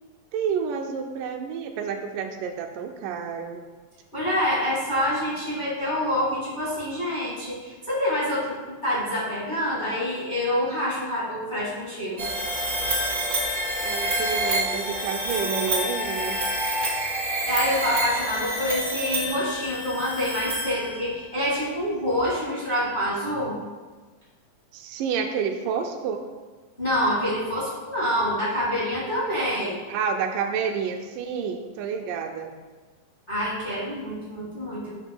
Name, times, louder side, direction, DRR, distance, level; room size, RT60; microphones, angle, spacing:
voice 1, 0.3-3.6 13.8-16.4 24.7-26.2 29.9-32.5, right 6 dB, 85° right, 5 dB, 2.2 m, -29 dB
voice 2, 4.1-12.2 17.5-23.6 26.8-29.8 33.3-34.9, equal, 20° left, -7 dB, 1.4 m, -26 dB
sound 1, 12.2-21.2, right 1 dB, 45° right, 1.3 m, -28 dB
9.8 x 7.4 x 2.3 m, 1.3 s
omnidirectional pair, 3.8 m